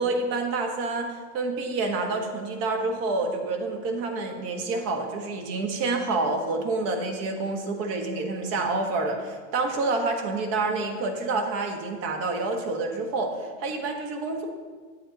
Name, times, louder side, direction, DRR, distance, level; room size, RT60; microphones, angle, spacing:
voice 1, 0.0-14.5, right 3 dB, 50° right, 3 dB, 1.4 m, -28 dB
8.5 x 7.5 x 4.1 m, 1.5 s
supercardioid pair, 130°, 32 cm